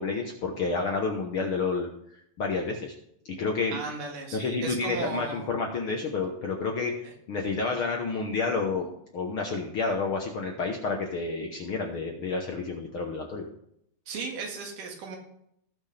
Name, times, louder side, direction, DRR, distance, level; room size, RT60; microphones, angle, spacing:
voice 1, 0.0-1.9 2.4-3.0 3.2-3.8 4.3-13.5, left 4 dB, 60° left, 2 dB, 1.4 m, -30 dB
voice 2, 3.7-5.5 7.0-7.1 14.1-15.2, right 4 dB, 80° right, 2 dB, 3.5 m, -36 dB
18.5 x 6.2 x 3.4 m, 0.74 s
omnidirectional pair, 3.7 m